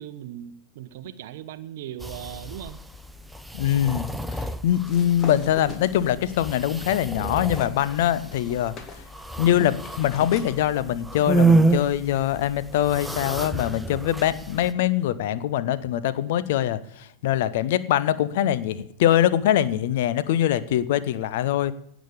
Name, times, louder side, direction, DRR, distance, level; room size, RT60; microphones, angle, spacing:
voice 1, 0.0-2.8, right 11 dB, 55° right, 10 dB, 0.7 m, -38 dB
sound 1, 2.0-14.7, right 3 dB, ahead, 0.7 m, -29 dB
voice 2, 3.5-8.7 9.4-21.7, left 11 dB, 55° left, 17 dB, 0.7 m, -23 dB
sound 2, 4.8-7.8 8.1-10.6, left 4 dB, 30° left, 1.7 m, -41 dB
16.5 x 6.2 x 6.9 m, 0.70 s
figure-of-eight pair, 90°, 0 cm